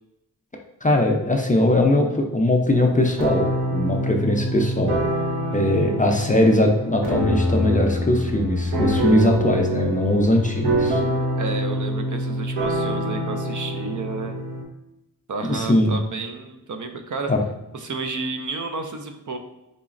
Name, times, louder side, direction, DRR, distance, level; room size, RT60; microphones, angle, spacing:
voice 1, 0.8-5.0 5.5-11.0 15.4-16.0 17.3-17.4, left 1 dB, 20° left, 2 dB, 0.4 m, -20 dB
sound 1, 2.8-14.6, equal, 80° right, 0.9 m, -25 dB
voice 2, 11.3-14.4 15.3-17.3 17.7-19.4, right 4 dB, 55° right, 5 dB, 0.4 m, -31 dB
3.9 x 3.0 x 2.4 m, 0.93 s
wide cardioid pair, 85°, 38 cm